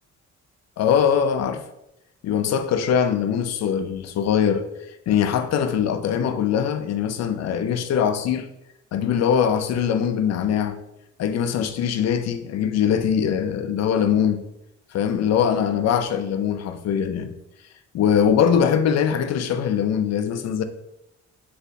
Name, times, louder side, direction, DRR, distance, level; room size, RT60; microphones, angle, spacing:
voice 1, 0.8-1.6 2.2-4.6 5.1-8.5 8.9-10.8 11.2-14.4 14.9-17.3 17.9-20.6, left 8 dB, 60° left, 0.5 m, -22 dB
4.1 x 3.3 x 2.7 m
cardioid pair, 90°, 30 cm